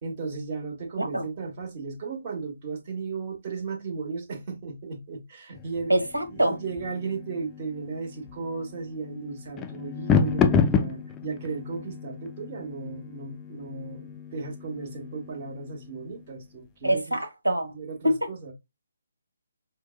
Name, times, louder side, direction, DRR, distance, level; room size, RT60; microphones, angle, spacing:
voice 1, 0.0-5.9 6.3-17.2 17.6-18.5, right 4 dB, 35° right, 1.3 m, -35 dB
sound 1, 5.5-16.3, left 6 dB, 15° left, 0.4 m, -30 dB
voice 2, 5.9-6.6 16.8-17.7 18.0-18.2, right 1 dB, 80° right, 1.3 m, -24 dB
6.0 x 2.2 x 2.2 m
figure-of-eight pair, 140°, 0 cm